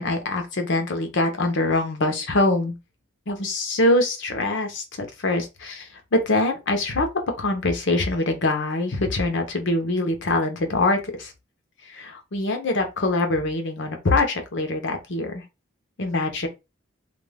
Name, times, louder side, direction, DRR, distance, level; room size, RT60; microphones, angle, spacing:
voice 1, 0.0-2.7 3.3-7.1 7.4-11.3 11.9-15.4 16.0-16.5, left 2 dB, 65° left, 0.8 m, -24 dB
2.5 x 2.3 x 3.3 m
head